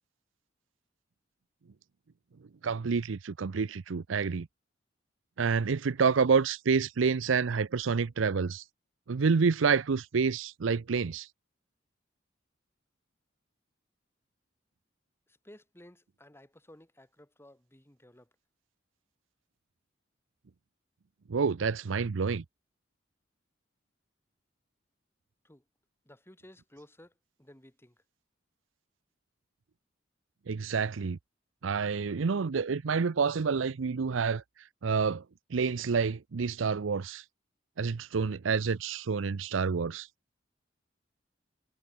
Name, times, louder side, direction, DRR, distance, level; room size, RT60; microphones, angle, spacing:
voice 1, 2.6-4.5 5.4-8.6 9.1-11.3 21.3-22.4 30.5-31.2 31.6-34.4 34.8-35.2 35.5-37.2 37.8-40.1, right 5 dB, 85° right, 0.6 m, -28 dB
voice 2, 15.3-18.3 25.4-25.6 26.0-27.1 27.4-28.0, left 1 dB, 15° left, 2.9 m, -55 dB
head